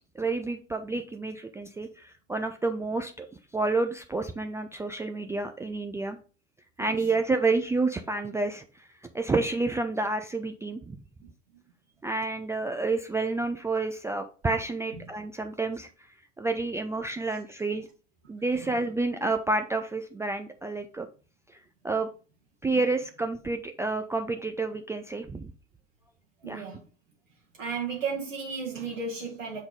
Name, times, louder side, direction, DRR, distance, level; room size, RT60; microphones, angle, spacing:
voice 1, 0.1-3.3 3.5-6.2 6.8-8.9 9.1-11.0 12.0-15.9 16.4-17.9 18.3-21.1 21.8-22.1 22.6-25.5 26.5-26.6, right 3 dB, 10° right, 0.3 m, -29 dB
voice 2, 26.4-26.8 27.6-29.6, right 5 dB, 80° right, 1.9 m, -34 dB
7.2 x 4.0 x 3.7 m
figure-of-eight pair, 75°, 38 cm